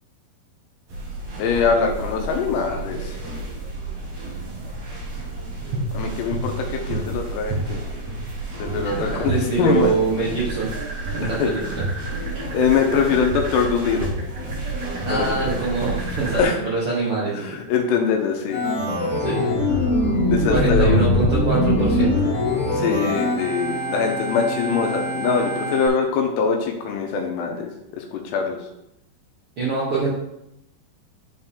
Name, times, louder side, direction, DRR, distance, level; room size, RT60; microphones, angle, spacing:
sound 1, 0.9-16.4, right 2 dB, 55° right, 2.0 m, -30 dB
voice 1, 1.4-3.2 5.9-7.6 8.6-9.9 11.2-11.5 12.5-14.1 15.1-15.6 16.4-16.6 17.4-18.6 20.3-21.1 22.7-28.6, left 5 dB, 85° left, 3 dB, 3.0 m, -23 dB
voice 2, 8.8-10.7 11.1-11.8 15.1-17.5 19.2-19.6 20.5-22.3 29.6-30.1, right 4 dB, 85° right, -6 dB, 1.2 m, -24 dB
sound 2, 10.4-16.6, right 4 dB, 40° right, 1.9 m, -35 dB
Organ, 18.5-25.9, left 1 dB, 50° left, 3.5 m, -22 dB
10.5 x 4.5 x 3.7 m, 0.84 s
omnidirectional pair, 4.8 m